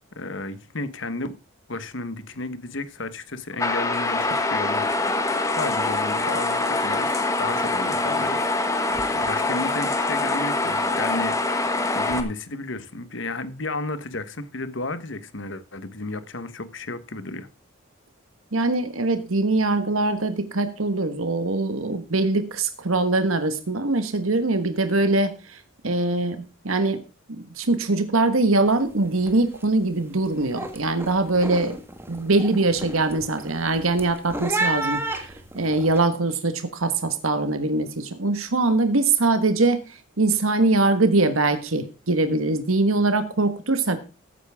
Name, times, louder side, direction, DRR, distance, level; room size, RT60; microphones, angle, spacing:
voice 1, 0.1-1.3 1.7-17.5, left 2 dB, 60° left, 1.2 m, -33 dB
sound 1, 3.6-12.2, left 2 dB, 15° left, 1.3 m, -24 dB
voice 2, 18.5-25.6 25.8-27.0 27.3-31.8 32.1-39.8 40.2-44.0, right 2 dB, 85° right, 1.5 m, -22 dB
sound 2, 28.7-28.9 29.2-29.6 30.0-36.0, right 2 dB, 10° right, 1.5 m, -32 dB
14.5 x 9.6 x 3.6 m
head